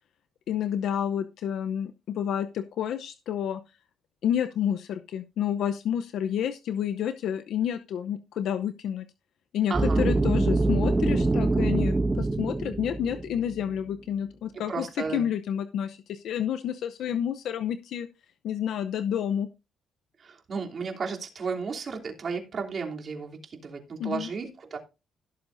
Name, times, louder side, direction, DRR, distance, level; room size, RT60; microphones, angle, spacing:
voice 1, 0.5-3.6 4.2-9.1 9.5-14.8 15.1-18.1 18.4-19.5 24.0-24.3, left 9 dB, 75° left, 9 dB, 0.7 m, -29 dB
sound 1, 9.7-13.7, right 2 dB, 20° right, 1.5 m, -24 dB
voice 2, 9.7-10.1 14.5-15.3 20.2-24.8, right 5 dB, 45° right, 2 dB, 3.0 m, -34 dB
17.0 x 7.1 x 2.6 m, 0.28 s
cardioid pair, 90°, 0 cm